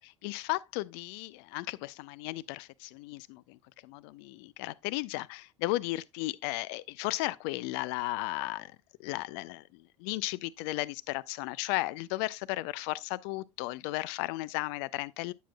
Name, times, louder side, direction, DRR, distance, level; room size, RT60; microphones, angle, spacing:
voice 1, 0.2-8.7 9.0-15.3, left 19 dB, 50° left, 0.4 m, -35 dB
9.2 x 7.4 x 2.2 m
figure-of-eight pair, 70°, 16 cm